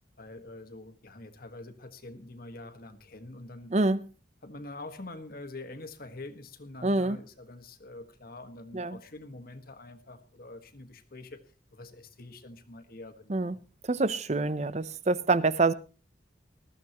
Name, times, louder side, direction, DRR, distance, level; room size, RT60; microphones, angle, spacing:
voice 1, 0.2-3.7 4.4-11.4 11.7-13.6, left 2 dB, 50° left, 1.6 m, -45 dB
voice 2, 3.7-4.0 6.8-7.2 8.7-9.0 13.3-13.6 13.9-15.7, right 3 dB, 35° right, 0.6 m, -26 dB
20.5 x 14.0 x 3.0 m
head